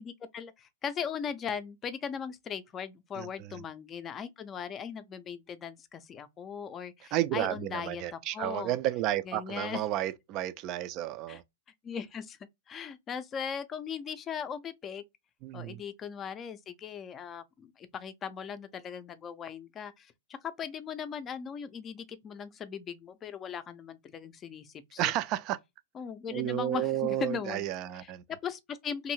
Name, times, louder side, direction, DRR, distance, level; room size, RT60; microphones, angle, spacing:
voice 1, 0.0-8.8 9.3-9.8 11.3-11.4 11.8-12.4 12.7-15.0 15.5-20.1 20.4-25.1 25.9-27.7 27.9-28.1 28.4-29.1, left 7 dB, 25° left, 0.4 m, -38 dB
voice 2, 3.2-3.6 7.1-11.4 15.4-15.8 25.0-25.6 26.3-28.2, right 13 dB, 40° right, 0.3 m, -32 dB
2.6 x 2.6 x 2.9 m
figure-of-eight pair, 105°, 0 cm